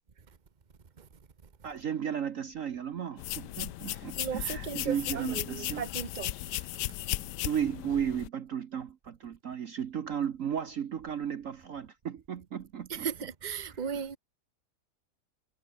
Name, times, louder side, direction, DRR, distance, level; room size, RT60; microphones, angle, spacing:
voice 1, 1.6-5.8 7.4-13.1, right 8 dB, 55° right, 1.2 m, -34 dB
sound 1, 3.2-8.3, left 15 dB, 85° left, 1.3 m, -36 dB
voice 2, 3.9-7.2 12.9-14.2, right 7 dB, 30° right, 1.2 m, -37 dB
omnidirectional pair, 1.8 m